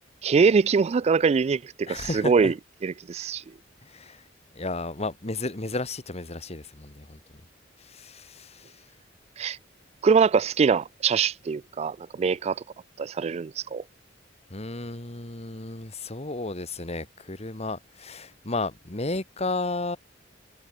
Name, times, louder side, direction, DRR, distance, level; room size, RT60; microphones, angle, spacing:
voice 1, 0.2-2.5 2.8-3.4 9.4-9.6 10.0-12.6 13.0-13.8, right 5 dB, 35° right, 0.3 m, -23 dB
voice 2, 1.9-2.5 3.8-4.2 4.5-7.2 7.8-8.8 14.5-20.0, left 2 dB, 35° left, 1.9 m, -33 dB
head